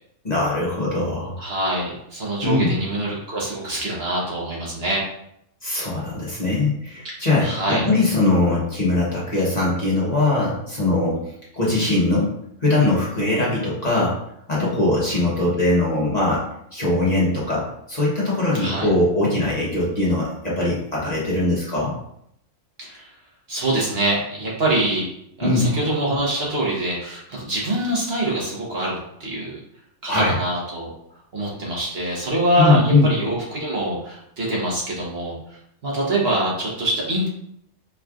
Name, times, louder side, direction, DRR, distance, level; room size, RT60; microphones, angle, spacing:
voice 1, 0.2-1.5 2.4-2.7 5.6-11.2 11.5-14.2 14.5-16.4 16.7-21.9 25.4-25.7 30.1-30.4 32.6-33.1, left 2 dB, 35° left, -6 dB, 1.1 m, -21 dB
voice 2, 1.4-5.0 7.4-7.8 18.6-18.9 22.8-23.1 23.5-25.0 25.4-29.6 30.0-30.9 31.3-35.4 35.8-37.3, right 1 dB, 55° right, -4 dB, 1.3 m, -24 dB
4.6 x 3.1 x 2.4 m, 0.73 s
omnidirectional pair, 1.3 m